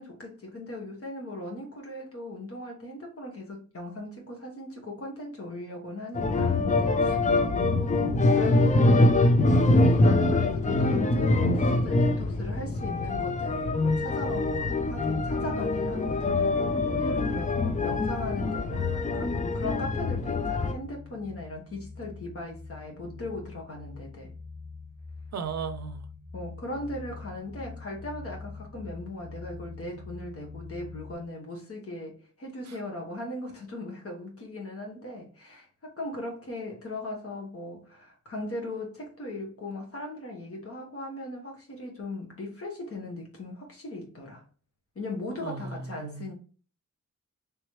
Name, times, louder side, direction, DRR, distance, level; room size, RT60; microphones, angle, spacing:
voice 1, 0.0-7.2 8.4-9.2 10.0-16.4 16.8-24.3 26.3-44.4 44.9-46.3, left 1 dB, 50° left, 1.3 m, -38 dB
sound 1, 6.1-20.7, left 2 dB, 25° left, 0.4 m, -24 dB
voice 2, 7.5-8.2 25.3-26.0 32.7-32.8 45.4-46.3, right 6 dB, 65° right, 0.5 m, -37 dB
sound 2, 16.8-31.1, left 4 dB, 75° left, 1.7 m, -44 dB
3.3 x 3.0 x 3.1 m
wide cardioid pair, 120°, 30 cm